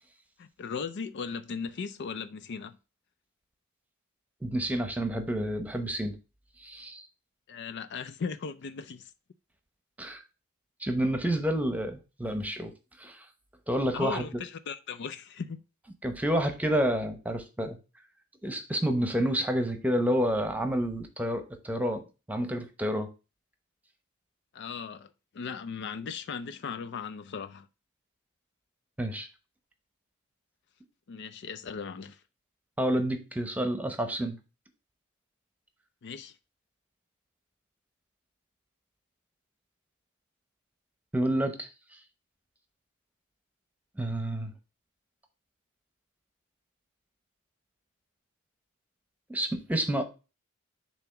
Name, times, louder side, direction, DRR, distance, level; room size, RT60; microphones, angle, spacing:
voice 1, 0.4-2.8 7.5-9.1 13.9-15.6 24.5-27.7 31.1-32.2 36.0-36.4, left 5 dB, 55° left, 0.4 m, -37 dB
voice 2, 4.4-6.1 6.6-7.0 10.0-10.2 10.8-12.7 13.0-13.2 13.7-14.2 16.0-17.8 18.4-22.0 22.3-23.1 29.0-29.3 32.8-34.4 41.1-41.7 44.0-44.5 49.3-50.0, equal, 5° right, 0.9 m, -29 dB
7.0 x 3.0 x 5.8 m
head